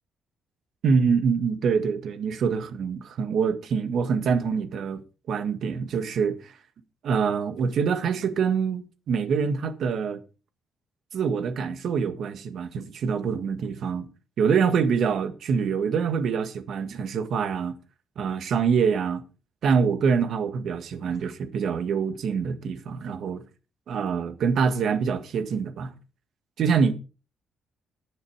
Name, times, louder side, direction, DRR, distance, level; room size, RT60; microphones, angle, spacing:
voice 1, 0.8-5.0 5.3-6.6 7.0-10.2 11.1-14.1 14.4-17.7 18.2-19.2 19.6-23.4 23.9-25.9 26.6-26.9, right 6 dB, 65° right, 1.8 m, -25 dB
11.0 x 10.0 x 4.9 m
cardioid pair, 90°, 0 cm